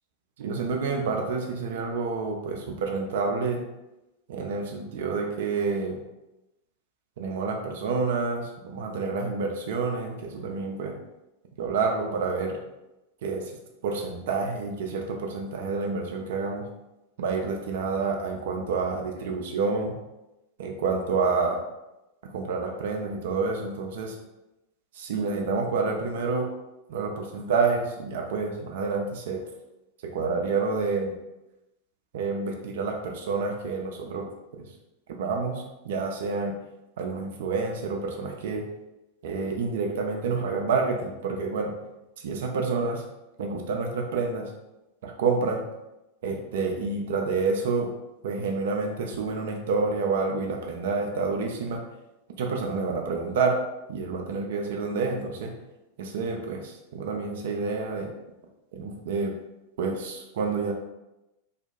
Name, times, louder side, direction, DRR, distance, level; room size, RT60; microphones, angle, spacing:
voice 1, 0.4-3.6 4.3-6.0 7.2-11.0 11.6-12.6 13.2-13.5 13.8-16.6 17.2-19.9 20.6-21.6 22.3-24.2 24.9-26.5 26.9-29.4 30.1-31.1 32.1-34.3 34.5-34.7 35.2-36.5 37.0-38.6 39.2-41.7 42.2-43.0 43.4-44.5 45.0-45.6 46.2-47.9 48.2-51.8 52.4-53.6 53.9-55.5 56.0-58.1 58.7-59.3 59.8-60.7, right 4 dB, 55° right, 1 dB, 0.3 m, -28 dB
2.7 x 2.1 x 2.4 m, 0.96 s
figure-of-eight pair, 90°, 0 cm